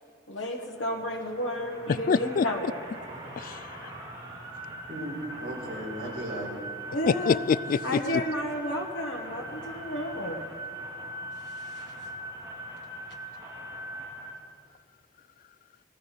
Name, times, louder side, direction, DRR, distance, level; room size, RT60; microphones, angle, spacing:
voice 1, 0.3-2.6 6.9-7.4 7.8-10.5 11.4-11.9, left 1 dB, 90° left, -1 dB, 1.3 m, -32 dB
sound 1, 0.7-14.3, right 1 dB, 25° right, 3.2 m, -41 dB
voice 2, 1.9-2.5 3.4-3.9 7.1-8.2, left 5 dB, 50° left, 19 dB, 0.3 m, -26 dB
voice 3, 4.5-6.5, right 1 dB, 50° right, -6 dB, 5.1 m, -37 dB
18.5 x 15.0 x 5.0 m, 2.2 s
head